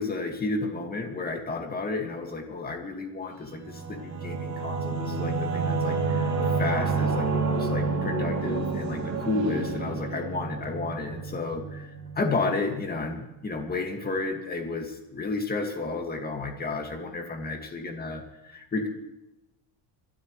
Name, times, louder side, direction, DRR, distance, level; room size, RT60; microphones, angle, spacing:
voice 1, 0.0-11.9 12.1-18.2 18.5-18.9, left 3 dB, 20° left, 3 dB, 2.2 m, -32 dB
Singing / Musical instrument, 3.5-12.7, right 4 dB, 35° right, 3.0 m, -29 dB
25.0 x 12.5 x 3.3 m, 0.98 s
cardioid pair, 150°, 47 cm